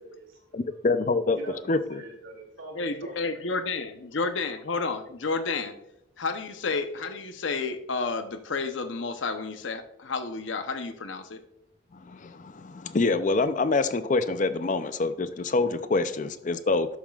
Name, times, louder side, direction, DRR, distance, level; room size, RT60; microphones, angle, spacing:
voice 1, 0.0-0.5 1.3-3.4, right 1 dB, 90° right, 1 dB, 2.6 m, -44 dB
voice 2, 0.5-1.4 1.7-2.0 11.9-16.9, left 3 dB, 40° left, 12 dB, 0.5 m, -26 dB
voice 3, 2.7-5.8 6.2-11.4, left 4 dB, 75° left, 8 dB, 0.8 m, -31 dB
12.5 x 7.2 x 2.4 m, 0.82 s
head